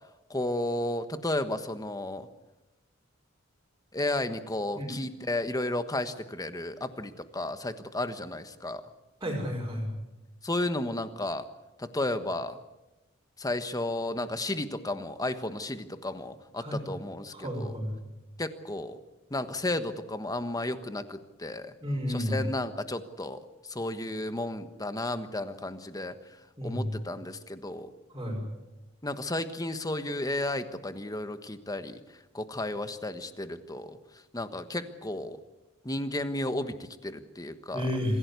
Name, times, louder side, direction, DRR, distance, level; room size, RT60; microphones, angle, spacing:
voice 1, 0.3-2.3 3.9-8.8 10.4-11.4 11.8-12.6 13.4-17.8 18.4-19.0 19.3-21.7 22.1-23.4 23.7-26.1 26.6-27.9 29.0-32.0 32.3-34.0 34.3-35.4 35.8-37.9, left 1 dB, 20° left, 10 dB, 1.3 m, -33 dB
voice 2, 9.2-9.9 16.6-16.8 17.3-18.0 21.8-22.4 26.6-26.9 28.1-28.4 37.7-38.2, equal, 20° right, -6 dB, 5.1 m, -31 dB
26.0 x 16.5 x 8.3 m, 1.0 s
head